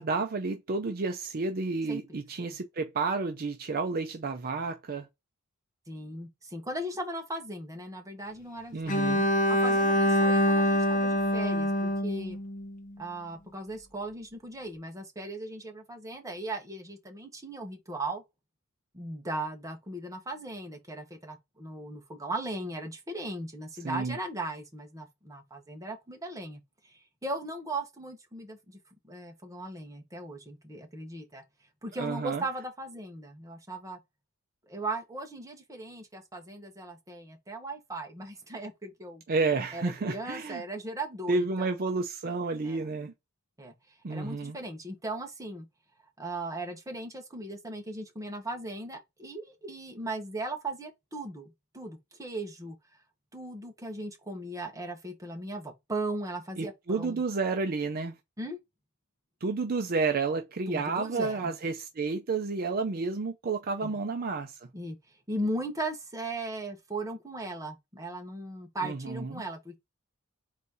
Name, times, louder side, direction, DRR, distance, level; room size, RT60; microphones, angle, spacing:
voice 1, 0.0-5.1 8.7-9.3 23.8-24.2 32.0-32.4 39.3-40.6 41.3-43.1 44.0-44.6 56.6-58.1 59.4-64.6 68.8-69.4, right 4 dB, 45° right, 0.5 m, -31 dB
voice 2, 5.9-9.1 9.5-12.4 13.0-18.2 18.9-28.8 29.0-31.4 31.8-34.0 34.7-39.2 39.7-41.7 42.6-42.9 43.6-43.7 44.1-45.7 46.2-52.8 53.3-57.2 58.4-58.6 60.7-61.5 63.8-63.9 64.7-65.0 65.3-69.8, right 2 dB, 15° right, 1.0 m, -38 dB
Bowed string instrument, 8.9-12.9, equal, 35° left, 0.9 m, -25 dB
4.1 x 2.7 x 4.7 m
head